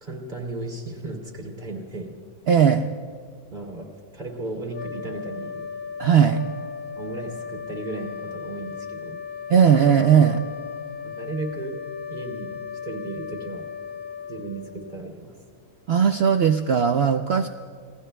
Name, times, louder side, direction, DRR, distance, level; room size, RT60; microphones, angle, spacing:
voice 1, 0.0-2.1 3.5-3.9 4.1-5.6 7.0-9.2 11.0-11.8 12.1-13.6 14.3-15.3, right 2 dB, 30° right, -1 dB, 2.6 m, -35 dB
voice 2, 2.5-2.9 6.0-6.4 9.5-10.4 15.9-17.5, right 7 dB, 70° right, 7 dB, 0.6 m, -18 dB
sound 1, 4.7-15.3, left 7 dB, 85° left, 1.4 m, -36 dB
28.0 x 20.0 x 2.2 m, 2.1 s
omnidirectional pair, 1.6 m